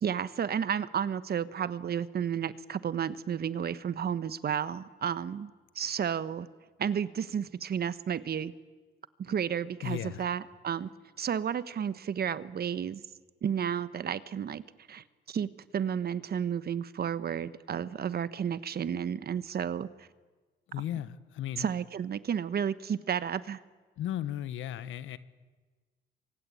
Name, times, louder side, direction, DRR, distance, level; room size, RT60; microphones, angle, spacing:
voice 1, 0.0-6.5 6.8-8.5 9.2-10.9 11.2-13.0 13.4-20.1 21.6-23.6, right 8 dB, 50° right, 14 dB, 1.3 m, -32 dB
voice 2, 9.8-10.3 20.7-21.7 24.0-25.2, left 11 dB, 80° left, 14 dB, 1.4 m, -35 dB
27.5 x 24.0 x 8.6 m, 1.4 s
cardioid pair, 90°, 20 cm